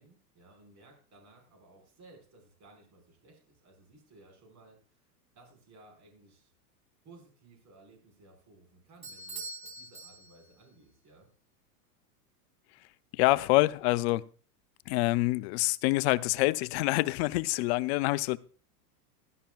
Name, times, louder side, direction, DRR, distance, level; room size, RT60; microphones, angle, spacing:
voice 1, 0.0-5.1 5.4-6.5 7.0-11.3, right 2 dB, 35° right, 5.0 m, -58 dB
Bell / Doorbell, 9.0-10.7, right 3 dB, 10° right, 2.6 m, -44 dB
voice 2, 13.1-14.3 14.9-18.4, left 20 dB, 45° left, 0.5 m, -26 dB
16.5 x 11.5 x 2.4 m
supercardioid pair, 125°, 48 cm